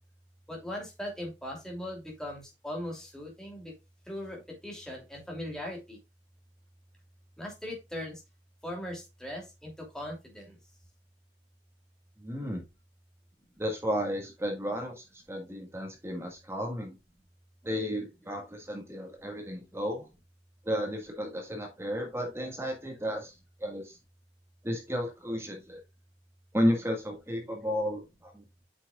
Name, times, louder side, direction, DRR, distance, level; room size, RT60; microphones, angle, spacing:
voice 1, 0.5-3.7 4.1-6.0 7.4-8.2 8.6-10.6, left 1 dB, 5° left, -1 dB, 2.7 m, -39 dB
voice 2, 12.2-12.6 13.6-17.0 17.6-20.1 20.6-23.3 23.6-24.0 24.6-25.8 26.5-28.4, equal, 15° right, 1 dB, 1.6 m, -33 dB
8.5 x 6.1 x 2.4 m, 0.23 s
head